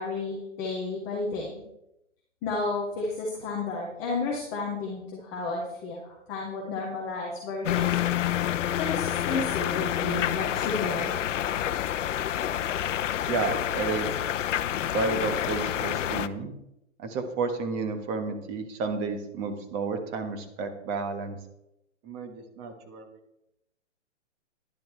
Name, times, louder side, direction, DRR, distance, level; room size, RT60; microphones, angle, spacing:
voice 1, 0.0-1.5 2.4-8.3 8.8-11.1, left 3 dB, 5° left, -2 dB, 0.4 m, -32 dB
sound 1, 7.6-16.3, left 11 dB, 75° left, 0.7 m, -28 dB
voice 2, 13.3-14.2 14.9-16.5 17.0-21.4 22.0-23.1, right 4 dB, 25° right, 7 dB, 1.4 m, -31 dB
12.0 x 10.5 x 3.3 m, 0.85 s
hypercardioid pair, 145°, 38 cm